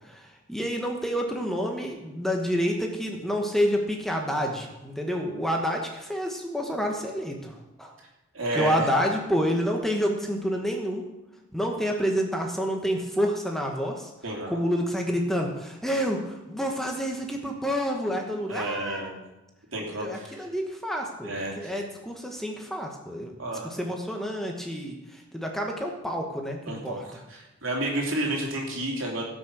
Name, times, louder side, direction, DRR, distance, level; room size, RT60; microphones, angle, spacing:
voice 1, 0.1-7.9 8.5-11.0 11.5-14.1 14.5-19.1 20.0-23.3 23.6-27.0, equal, ahead, 1 dB, 1.2 m, -28 dB
voice 2, 8.3-8.9 14.2-14.6 18.5-19.1 19.7-20.4 21.2-21.7 23.4-23.7 26.7-29.2, right 1 dB, 75° right, -1 dB, 3.2 m, -31 dB
17.0 x 6.2 x 6.3 m, 0.99 s
head